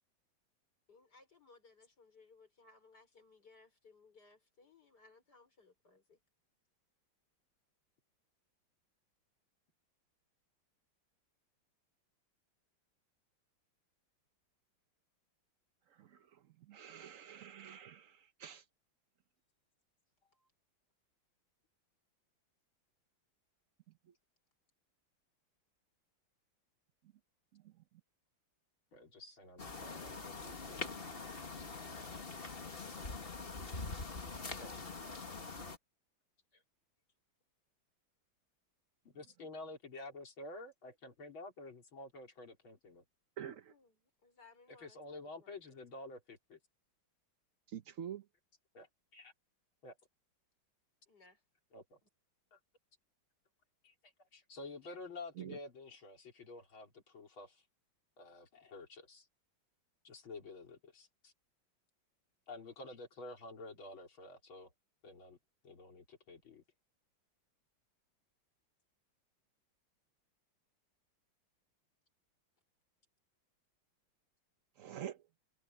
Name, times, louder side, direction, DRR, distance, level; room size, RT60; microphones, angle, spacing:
voice 1, 0.9-6.2 20.2-20.5 43.7-45.5 51.1-51.4, left 4 dB, 50° left, 5.4 m, -63 dB
voice 2, 15.9-18.7 27.5-27.7 43.4-43.7 47.7-48.3 55.4-55.6 74.8-75.2, right 10 dB, 60° right, 0.9 m, -47 dB
voice 3, 28.9-31.3 34.6-34.7 36.5-36.6 39.0-43.0 44.7-46.6 48.7-49.3 49.8-50.0 51.7-52.0 52.5-52.6 53.8-57.6 58.2-59.3 60.0-61.3 62.5-64.7 65.0-65.4 65.6-66.6, left 2 dB, 80° left, 4.7 m, -50 dB
sound 1, 29.6-35.8, left 3 dB, 30° left, 1.8 m, -44 dB
omnidirectional pair, 2.2 m